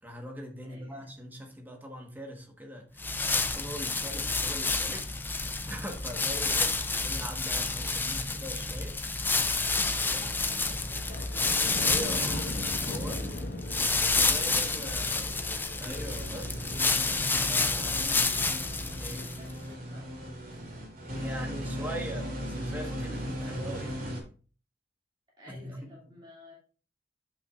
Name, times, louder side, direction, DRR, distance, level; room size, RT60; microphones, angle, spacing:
voice 1, 0.0-9.0 10.1-10.3 11.8-13.1 14.0-15.2 15.8-16.6 17.4-18.1 19.0-19.2 20.6-24.0 25.5-25.9, equal, 10° right, 1 dB, 1.5 m, -42 dB
voice 2, 0.7-1.1 3.8-4.2 6.1-7.0 9.5-11.9 13.0-13.6 14.3-15.5 17.0-18.5 19.1-20.3 25.4-26.5, equal, 25° right, -6 dB, 2.5 m, -52 dB
sound 1, 3.0-19.5, left 3 dB, 10° left, 0.5 m, -29 dB
sound 2, 8.4-8.5 9.0-19.7, left 1 dB, 65° left, 1.6 m, -42 dB
sound 3, 15.7-24.2, equal, 55° right, 2.9 m, -38 dB
9.1 x 6.0 x 2.5 m, 0.38 s
head